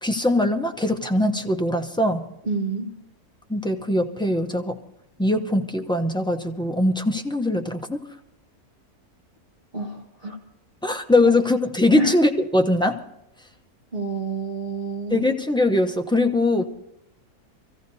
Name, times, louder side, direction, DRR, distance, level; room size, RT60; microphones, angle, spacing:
voice 1, 0.0-2.3 3.5-4.8 5.2-8.0 10.8-13.0 15.1-16.7, left 1 dB, 5° left, 3 dB, 0.3 m, -21 dB
voice 2, 2.5-2.9 9.7-10.4 12.0-12.1 13.9-15.3, right 2 dB, 40° right, -3 dB, 1.9 m, -28 dB
26.0 x 15.0 x 2.7 m, 0.85 s
omnidirectional pair, 1.6 m